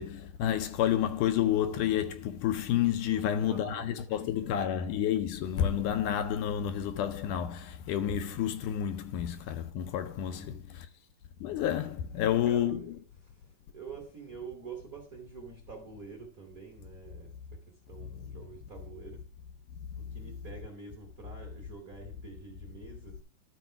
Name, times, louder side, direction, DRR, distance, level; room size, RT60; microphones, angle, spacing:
voice 1, 0.0-10.9 11.4-12.8, left 10 dB, 75° left, 2.0 m, -30 dB
voice 2, 3.0-4.8 10.3-11.0 11.4-19.3 19.9-23.2, right 5 dB, 40° right, 1.4 m, -48 dB
12.5 x 4.2 x 5.7 m
omnidirectional pair, 3.9 m